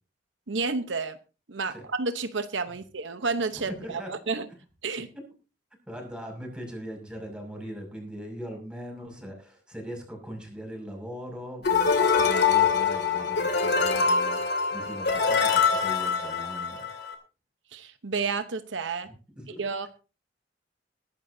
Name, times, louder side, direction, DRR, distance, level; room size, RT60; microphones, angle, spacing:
voice 1, 0.5-1.2 1.5-4.4 4.8-5.1 17.7-19.1 19.6-19.9, right 4 dB, 75° right, 10 dB, 0.9 m, -30 dB
voice 2, 3.5-4.3 5.9-17.1 19.0-19.9, equal, 5° right, 1 dB, 6.2 m, -40 dB
sound 1, 11.6-17.1, left 5 dB, 60° left, 2.5 m, -24 dB
21.0 x 12.0 x 2.7 m, 0.33 s
head